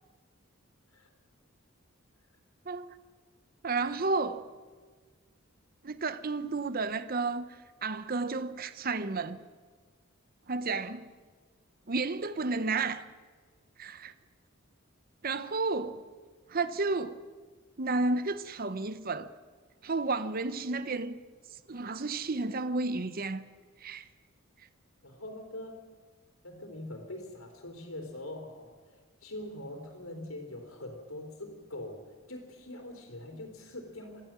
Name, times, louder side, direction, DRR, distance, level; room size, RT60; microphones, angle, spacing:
voice 1, 2.7-3.0 3.6-4.5 5.8-9.4 10.5-11.1 11.9-13.0 13.8-14.1 15.2-16.1 16.5-17.2 17.8-19.3 19.8-21.2 21.7-23.4 23.8-24.1, right 3 dB, 45° right, 0.8 m, -32 dB
voice 2, 25.0-25.8 26.4-34.2, left 1 dB, 80° left, 3.7 m, -43 dB
24.5 x 15.5 x 7.5 m
head